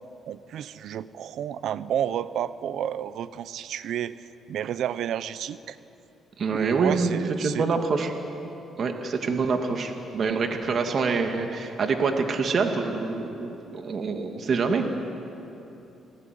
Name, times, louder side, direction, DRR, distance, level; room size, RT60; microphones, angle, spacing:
voice 1, 0.3-5.8 6.5-7.8, right 10 dB, 75° right, 15 dB, 0.9 m, -31 dB
voice 2, 6.4-8.1 8.7-14.9, right 4 dB, 50° right, 4 dB, 2.4 m, -26 dB
28.5 x 19.5 x 9.5 m, 2.9 s
cardioid pair, 90°, 0 cm